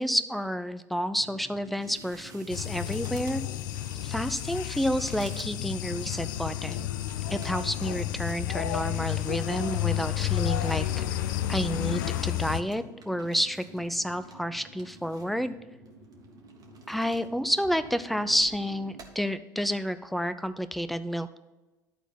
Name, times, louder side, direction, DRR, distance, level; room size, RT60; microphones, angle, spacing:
voice 1, 0.0-3.4 4.0-6.9 7.3-11.1 11.5-15.6 16.9-21.4, equal, ahead, 12 dB, 0.5 m, -30 dB
sound 1, 1.1-19.0, right 1 dB, 85° right, 2.5 m, -51 dB
sound 2, 1.8-10.8 11.1-12.0 12.4-12.5 12.7-13.9 14.2-15.4 15.9-17.3 17.6-18.6 19.0-19.1, right 4 dB, 35° right, 1.6 m, -54 dB
sound 3, 2.5-12.6, left 14 dB, 70° left, 0.4 m, -31 dB
11.5 x 4.0 x 5.8 m, 1.1 s
hypercardioid pair, 70°, 11 cm